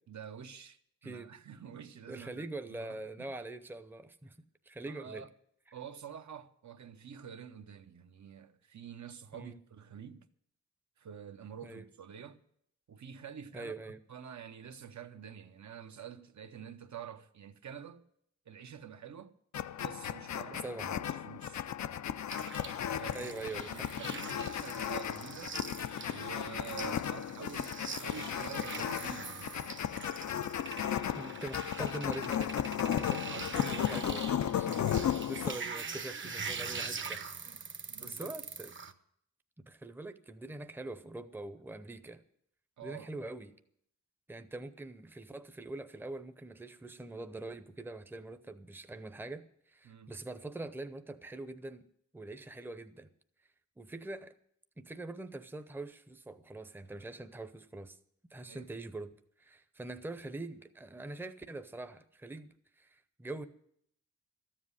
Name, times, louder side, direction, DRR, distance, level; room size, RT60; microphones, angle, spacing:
voice 1, 0.1-2.5 2.8-3.3 4.9-5.3 5.7-10.3 11.0-12.4 12.9-13.7 14.1-18.0 18.5-19.4 19.8-20.7 21.1-21.7 22.9-23.3 23.7-25.6 26.1-29.5 33.1-34.3 35.4-35.5 37.5-37.6 37.9-38.4 42.8-43.1 49.8-50.1 58.4-58.7, right 8 dB, 75° right, 0.9 m, -48 dB
voice 2, 2.1-4.4 4.7-5.2 9.3-9.6 11.6-11.9 13.5-14.0 20.6-20.9 23.1-23.9 31.1-34.2 34.6-37.6 38.0-38.7 39.7-42.2 42.8-43.5 44.3-51.9 52.1-53.1 53.8-54.3 54.8-58.0 58.3-63.4, right 2 dB, 5° right, 0.6 m, -44 dB
sound 1, 19.5-35.5, left 10 dB, 75° left, 0.5 m, -35 dB
sound 2, 22.3-38.9, right 5 dB, 40° right, 0.8 m, -43 dB
13.5 x 7.6 x 9.7 m
wide cardioid pair, 145°, 29 cm